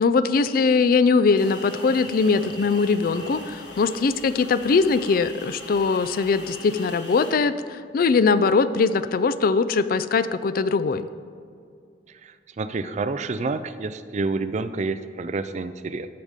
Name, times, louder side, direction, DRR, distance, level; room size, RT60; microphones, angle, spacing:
voice 1, 0.0-11.1, left 4 dB, 55° left, 14 dB, 0.4 m, -21 dB
sound 1, 1.3-7.3, left 2 dB, 90° left, 1.6 m, -41 dB
voice 2, 12.2-16.1, right 3 dB, 40° right, 12 dB, 0.4 m, -29 dB
13.5 x 5.2 x 5.0 m, 2.3 s
head